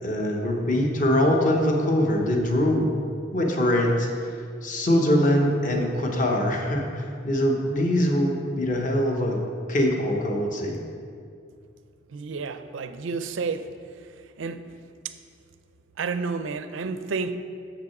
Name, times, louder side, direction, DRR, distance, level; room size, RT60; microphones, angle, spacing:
voice 1, 0.0-2.9 3.3-4.1 4.6-9.4 9.7-10.8, left 1 dB, 40° left, 1 dB, 1.0 m, -23 dB
voice 2, 12.1-13.7 14.4-14.7 16.0-17.3, right 4 dB, 75° right, 11 dB, 0.4 m, -30 dB
7.1 x 6.0 x 5.9 m, 2.3 s
head